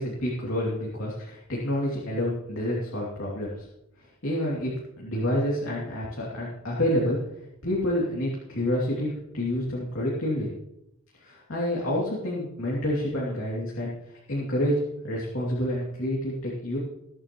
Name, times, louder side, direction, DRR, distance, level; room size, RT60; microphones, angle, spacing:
voice 1, 0.0-3.6 4.2-7.2 7.6-10.5 11.2-13.9 14.3-16.8, left 1 dB, 65° left, -5 dB, 2.9 m, -28 dB
21.0 x 8.8 x 3.1 m, 0.84 s
head